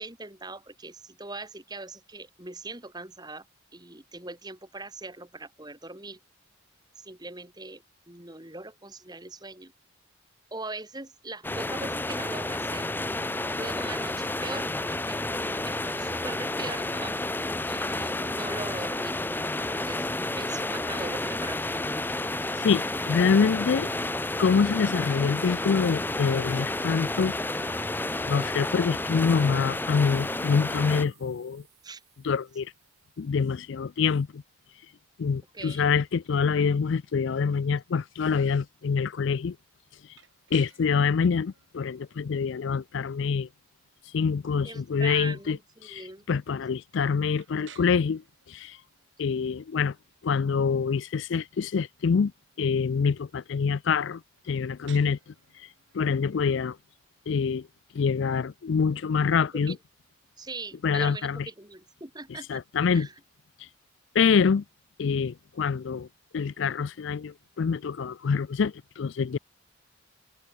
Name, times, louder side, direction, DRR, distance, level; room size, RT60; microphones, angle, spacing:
voice 1, 0.0-3.5 3.7-6.2 7.0-9.7 10.5-12.9 13.5-15.2 15.7-17.2 17.7-19.2 19.5-20.0 20.4-21.7 31.8-32.0 35.5-35.9 44.6-46.2 59.7-59.8 60.4-62.6 62.9-63.1, right 2 dB, 20° right, 2.5 m, -41 dB
sound 1, 11.4-31.0, left 2 dB, 10° left, 0.8 m, -31 dB
voice 2, 22.6-23.9 24.4-27.4 27.6-27.8 28.3-31.6 32.2-32.7 33.2-34.4 35.2-39.6 40.5-43.5 44.1-45.6 45.8-48.2 48.5-48.8 49.2-49.9 50.2-52.3 52.6-54.2 54.5-55.2 55.9-56.8 57.3-57.7 57.9-59.8 60.8-61.4 62.5-63.1 64.1-64.6 65.0-66.1 66.3-69.4, left 5 dB, 60° left, 0.4 m, -25 dB
sound 2, 30.2-34.8, right 18 dB, 90° right, 6.8 m, -63 dB
sound 3, 40.1-59.9, right 9 dB, 65° right, 7.5 m, -59 dB
head